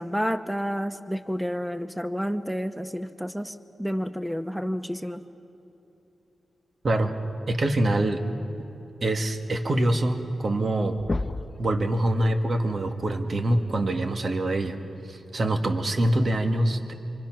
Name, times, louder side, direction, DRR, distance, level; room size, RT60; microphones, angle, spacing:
voice 1, 0.0-5.2, equal, 5° right, 8 dB, 1.0 m, -30 dB
voice 2, 7.5-8.2 9.0-11.0 11.6-14.8 15.1-16.9, right 1 dB, 50° right, 5 dB, 1.8 m, -24 dB
sound 1, 10.5-10.7 11.0-11.6 13.3-13.4 15.3-15.4 16.3-16.4, left 2 dB, 30° left, 0.8 m, -30 dB
26.5 x 24.5 x 6.1 m, 3.0 s
cardioid pair, 85°, 0 cm